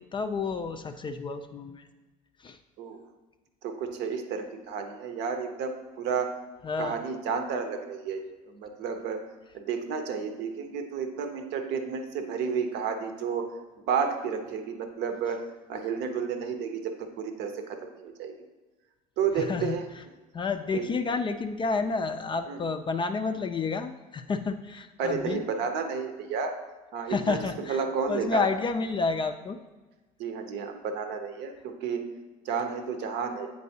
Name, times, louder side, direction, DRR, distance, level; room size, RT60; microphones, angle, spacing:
voice 1, 0.0-1.9 2.4-2.6 6.6-7.0 19.4-19.8 20.3-25.4 27.1-27.8 28.1-29.6, left 4 dB, 25° left, 7 dB, 0.4 m, -30 dB
voice 2, 3.6-6.4 6.8-9.2 9.5-13.5 13.9-15.4 15.7-18.3 19.2-19.8 20.7-20.9 22.5-22.6 25.0-26.6 26.9-27.4 27.7-28.5 30.2-32.0 32.4-33.5, right 6 dB, 60° right, 6 dB, 0.8 m, -31 dB
8.2 x 4.6 x 2.7 m, 1.2 s
hypercardioid pair, 75°, 20 cm